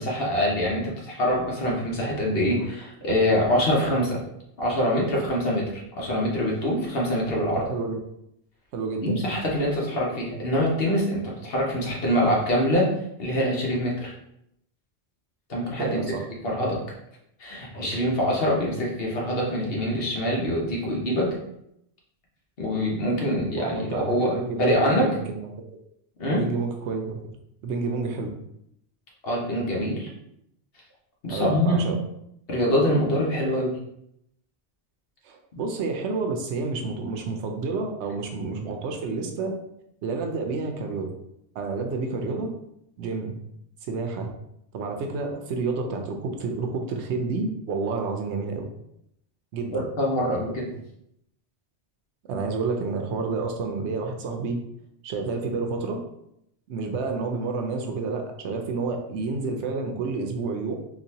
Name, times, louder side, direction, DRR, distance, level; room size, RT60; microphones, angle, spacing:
voice 1, 0.0-4.2 4.6-7.6 9.0-12.9 13.2-14.1 15.5-16.0 16.4-16.8 17.4-21.3 22.6-25.1 26.2-26.5 29.2-30.1 31.2-31.8 32.5-33.8 35.5-35.6 49.7-50.7, equal, 60° left, -3 dB, 1.1 m, -24 dB
voice 2, 7.6-8.0 8.7-9.2 15.8-16.2 23.6-25.8 26.3-27.2 27.6-28.3 31.3-32.0 35.2-39.6 40.0-41.1 41.5-42.5 43.0-43.4 43.9-44.3 44.7-48.7 49.5-49.9 52.3-54.6 55.0-56.0 56.7-60.7, right 4 dB, 80° right, 3 dB, 0.9 m, -29 dB
3.9 x 2.5 x 2.7 m, 0.77 s
omnidirectional pair, 1.2 m